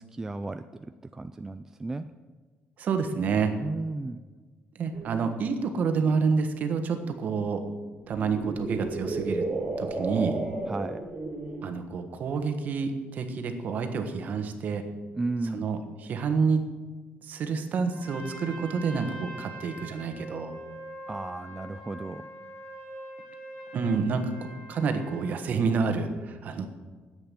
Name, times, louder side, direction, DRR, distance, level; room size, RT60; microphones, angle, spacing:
voice 1, 0.0-2.1 3.6-4.2 10.7-11.0 15.1-15.7 21.1-22.3, right 2 dB, 15° right, 9 dB, 0.3 m, -34 dB
voice 2, 2.8-3.5 4.8-7.6 8.1-9.5 9.8-10.4 11.6-14.8 15.5-16.6 17.2-20.5 23.7-24.3 24.7-26.7, right 5 dB, 45° right, 6 dB, 1.3 m, -28 dB
sound 1, 4.9-5.0 7.9-11.7, right 3 dB, 30° right, 2.2 m, -32 dB
Trumpet, 17.9-25.5, right 1 dB, 60° left, 3.9 m, -44 dB
10.5 x 8.1 x 9.1 m, 1.4 s
cardioid pair, 160°, 4 cm